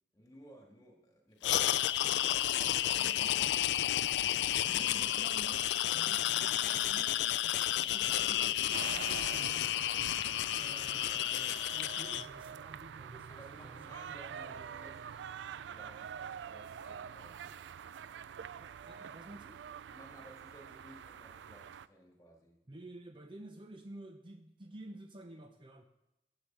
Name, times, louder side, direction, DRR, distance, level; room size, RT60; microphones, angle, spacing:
voice 1, 0.1-3.5 13.3-15.2 15.6-17.5 19.9-22.6, right 1 dB, 20° left, 0 dB, 2.0 m, -57 dB
sound 1, 1.4-12.2, left 12 dB, 70° left, 0.3 m, -31 dB
voice 2, 4.6-10.1 10.6-14.7 18.6-19.6 22.7-25.8, right 1 dB, 30° right, 5 dB, 0.6 m, -52 dB
sound 2, 8.7-21.9, right 8 dB, 80° right, 0.3 m, -46 dB
8.1 x 6.7 x 7.5 m, 0.91 s
head